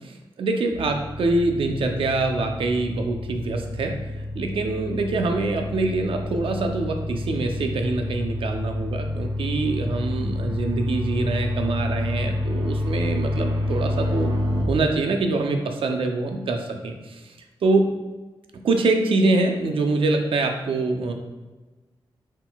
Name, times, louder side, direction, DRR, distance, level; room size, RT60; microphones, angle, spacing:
voice 1, 0.0-4.0 4.3-14.3 14.7-17.3 17.6-17.9 18.5-21.1, right 3 dB, 90° right, 4 dB, 0.5 m, -24 dB
sound 1, 0.7-14.6, left 1 dB, 45° right, 0.7 m, -29 dB
4.1 x 3.9 x 2.2 m, 1.2 s
wide cardioid pair, 125°, 9 cm